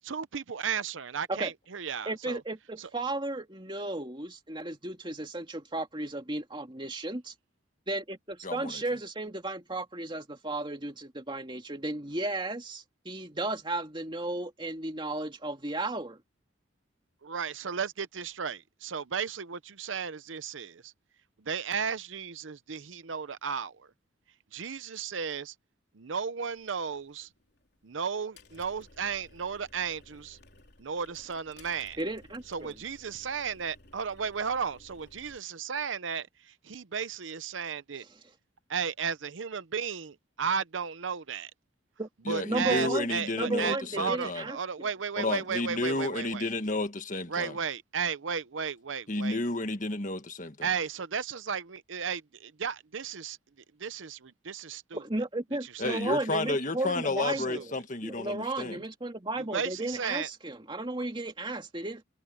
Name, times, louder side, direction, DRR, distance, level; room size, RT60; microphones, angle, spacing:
voice 1, 0.0-2.4 2.8-2.9 17.2-20.9 21.4-23.9 24.5-25.5 25.9-27.3 27.8-30.4 30.8-32.0 32.5-38.0 38.7-41.5 42.3-46.5 47.3-49.4 50.6-53.4 53.8-55.0 55.6-56.0 57.3-57.7 59.4-60.3, right 6 dB, 80° right, 0.7 m, -34 dB
voice 2, 2.1-7.3 7.9-16.2 32.0-32.8 42.0-42.1 42.4-44.9 54.9-57.7 58.0-62.0, right 2 dB, 25° right, 2.4 m, -34 dB
voice 3, 8.4-8.8 42.3-44.4 45.2-47.5 49.1-50.7 55.8-58.8, left 2 dB, 40° left, 1.8 m, -31 dB
sound 1, 26.5-35.4, left 2 dB, 55° left, 4.1 m, -57 dB
head